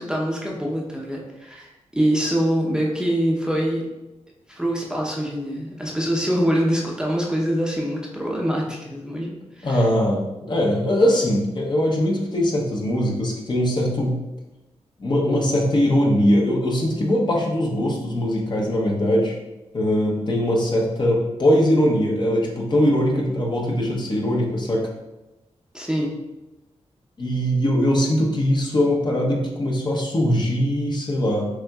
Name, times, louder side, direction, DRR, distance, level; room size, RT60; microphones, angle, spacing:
voice 1, 0.0-3.8 4.5-9.9 25.7-26.1, equal, 5° right, -2 dB, 0.7 m, -24 dB
voice 2, 9.6-14.2 15.0-19.3 19.7-24.9 27.2-31.5, equal, 40° left, -1 dB, 0.9 m, -21 dB
5.9 x 2.6 x 2.3 m, 1.0 s
cardioid pair, 70°, 12 cm